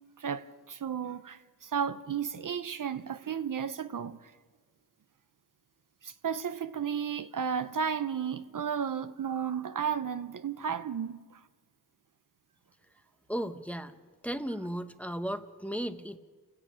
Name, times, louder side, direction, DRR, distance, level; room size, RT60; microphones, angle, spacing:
voice 1, 0.2-4.2 6.0-11.2, right 7 dB, 55° right, 0.8 m, -33 dB
voice 2, 13.3-13.9 14.2-16.2, equal, 5° left, 1.1 m, -35 dB
29.0 x 10.5 x 8.7 m
cardioid pair, 75°, 39 cm